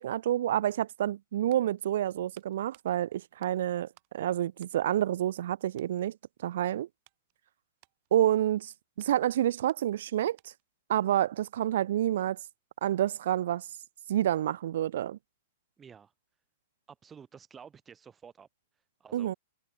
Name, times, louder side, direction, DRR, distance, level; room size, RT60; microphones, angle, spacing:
voice 1, 0.0-3.9 4.1-6.2 6.4-6.9 8.1-8.7 9.0-10.5 10.9-12.4 12.8-13.7 14.1-15.2 19.1-19.3, right 12 dB, 65° right, 0.4 m, -28 dB
sound 1, 1.3-4.2 4.5-5.5 5.7-6.0 6.5-10.8 11.1-11.2, right 35 dB, 40° right, 6.2 m, -66 dB
voice 2, 15.8-16.1 16.9-18.5 19.0-19.4, right 7 dB, 15° right, 1.7 m, -51 dB
hypercardioid pair, 150°, 0 cm